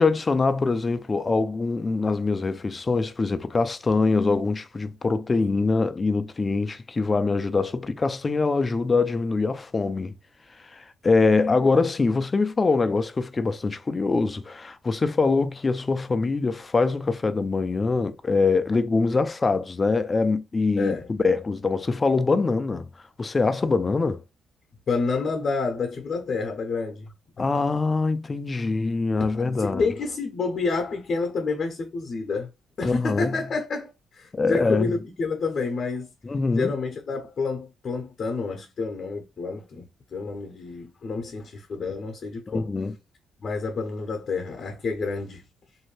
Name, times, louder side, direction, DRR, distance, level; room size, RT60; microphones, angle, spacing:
voice 1, 0.0-10.1 10.7-22.9 23.2-24.2 27.4-29.9 32.8-33.4 34.3-34.9 36.2-36.7 42.5-42.9, left 3 dB, 30° left, 0.3 m, -23 dB
voice 2, 20.7-21.1 24.9-27.1 29.6-32.5 32.8-36.1 36.5-42.7 43.4-45.4, left 4 dB, 50° left, 0.7 m, -29 dB
2.6 x 2.2 x 3.1 m
cardioid pair, 90°, 0 cm